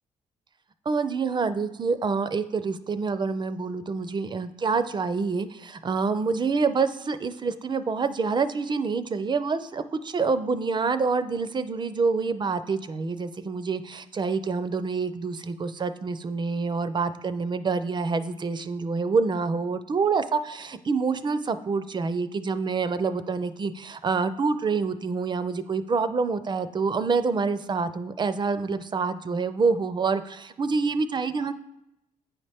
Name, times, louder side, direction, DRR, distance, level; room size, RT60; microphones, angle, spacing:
voice 1, 0.9-31.5, right 4 dB, 35° right, 12 dB, 0.4 m, -27 dB
8.8 x 4.2 x 3.4 m, 0.84 s
cardioid pair, 80°, 14 cm